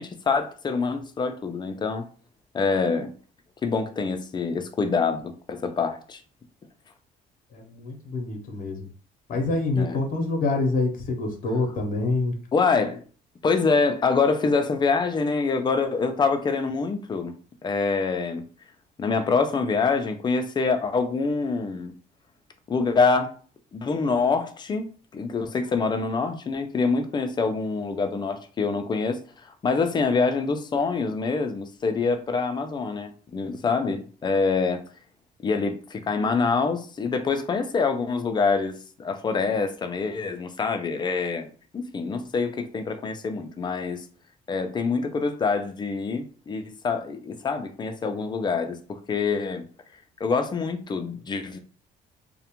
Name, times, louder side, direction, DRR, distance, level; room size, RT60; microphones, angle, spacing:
voice 1, 0.0-2.0 2.5-3.1 3.6-6.2 9.7-10.0 12.5-13.0 13.4-17.3 17.6-18.4 19.0-21.9 22.7-23.4 23.7-24.8 25.1-34.8 35.4-44.1 44.5-49.6 50.2-51.6, left 4 dB, 25° left, 0.4 m, -25 dB
voice 2, 7.5-8.9 9.3-12.3, left 3 dB, 55° left, 0.8 m, -26 dB
2.4 x 2.1 x 2.9 m
cardioid pair, 110°, 17 cm